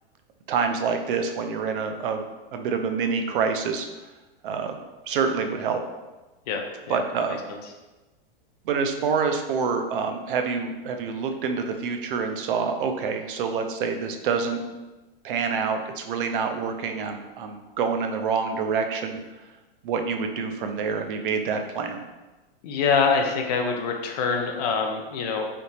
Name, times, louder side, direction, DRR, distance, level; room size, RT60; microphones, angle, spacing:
voice 1, 0.5-2.2 2.5-3.9 4.4-4.8 5.1-5.8 6.9-7.4 8.7-14.6 15.2-19.2 19.8-22.0, right 5 dB, 60° right, 5 dB, 0.5 m, -27 dB
voice 2, 6.5-7.0 22.6-25.4, left 5 dB, 45° left, 3 dB, 0.5 m, -25 dB
3.4 x 2.8 x 2.7 m, 1.1 s
supercardioid pair, 160°, 29 cm